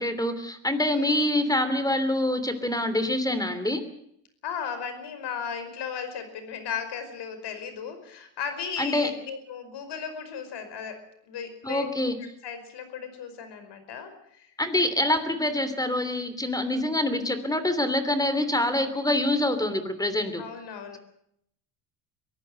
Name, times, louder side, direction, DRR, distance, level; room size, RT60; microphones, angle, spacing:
voice 1, 0.0-3.8 8.8-9.1 11.6-12.1 14.6-20.4, left 1 dB, 10° left, 11 dB, 3.0 m, -25 dB
voice 2, 0.9-1.2 4.4-11.0 11.3-11.9 12.4-14.5 20.4-21.0, left 7 dB, 60° left, 9 dB, 5.3 m, -36 dB
23.0 x 15.0 x 7.7 m, 0.72 s
cardioid pair, 100°, 47 cm